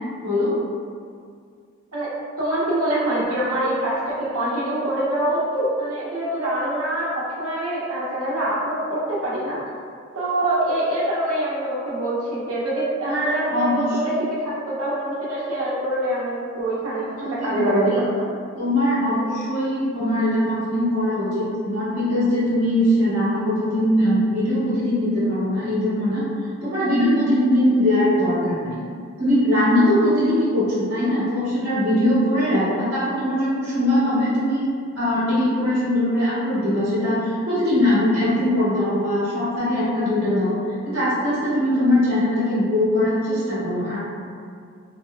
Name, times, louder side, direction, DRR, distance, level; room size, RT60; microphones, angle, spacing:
voice 1, 2.4-9.6 10.1-14.1 14.4-17.8, right 1 dB, 85° right, -7 dB, 0.9 m, -25 dB
voice 2, 13.1-13.9 17.1-18.0 18.6-26.2 26.6-28.8 29.2-34.7 34.9-40.6 40.8-44.0, left 1 dB, 50° right, -12 dB, 1.0 m, -21 dB
3.1 x 2.9 x 2.2 m, 2.2 s
head